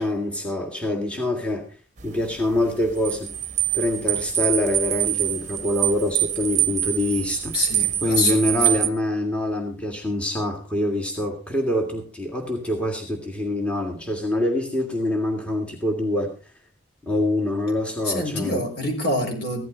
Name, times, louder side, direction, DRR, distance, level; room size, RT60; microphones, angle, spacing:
voice 1, 0.0-1.6 2.0-3.3 3.7-7.6 8.0-16.3 17.0-18.6, left 1 dB, 5° left, 1 dB, 1.9 m, -25 dB
sound 1, 2.0-8.9, right 12 dB, 40° right, 0.8 m, -25 dB
voice 2, 7.5-8.6 18.0-19.6, left 1 dB, 55° left, 3 dB, 4.5 m, -26 dB
15.5 x 12.5 x 3.9 m, 0.33 s
head